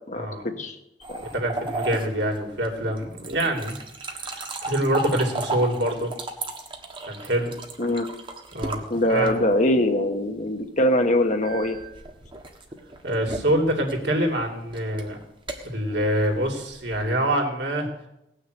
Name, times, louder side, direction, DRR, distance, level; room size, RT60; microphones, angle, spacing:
voice 1, 0.1-0.7 1.1-1.2 7.8-8.1 8.9-11.8, left 1 dB, 45° left, 6 dB, 1.2 m, -23 dB
sound 1, 1.0-9.6 11.4-17.1, right 2 dB, 30° right, 1.4 m, -35 dB
voice 2, 1.2-3.8 4.1-6.1 7.0-7.5 8.5-8.8 9.1-9.3 13.0-15.2 15.6-17.9, right 1 dB, 70° right, 1 dB, 2.9 m, -25 dB
18.0 x 6.5 x 7.9 m, 0.85 s
head